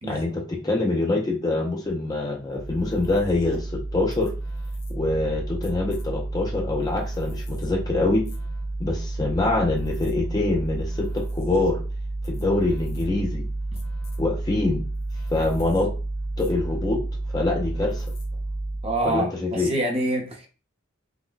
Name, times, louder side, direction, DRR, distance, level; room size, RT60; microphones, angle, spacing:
voice 1, 0.0-4.3 4.9-8.2 8.8-11.8 12.2-13.5 14.2-14.8 15.3-15.9 16.4-17.0 17.3-18.1 19.0-19.7, left 2 dB, 20° left, 0.4 m, -25 dB
sound 1, 2.5-19.1, right 2 dB, 75° left, 0.7 m, -31 dB
voice 2, 18.8-20.5, right 1 dB, 30° right, 0.6 m, -26 dB
3.8 x 2.1 x 2.4 m
head